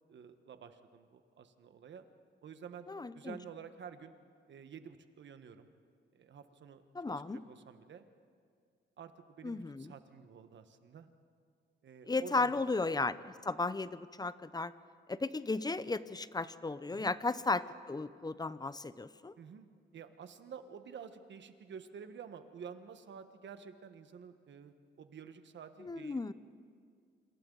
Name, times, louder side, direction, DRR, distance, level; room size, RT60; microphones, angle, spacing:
voice 1, 0.1-2.0 2.4-2.9 3.1-4.2 4.5-5.7 6.1-8.0 9.0-11.1 11.8-12.9 16.9-17.1 19.4-26.3, right 7 dB, 70° right, 9 dB, 1.4 m, -50 dB
voice 2, 2.9-3.4 6.9-7.4 9.4-9.9 12.1-14.7 15.1-19.3 25.8-26.3, left 3 dB, 20° left, 15 dB, 0.7 m, -35 dB
27.5 x 26.0 x 4.0 m, 2.1 s
cardioid pair, 95°, 20 cm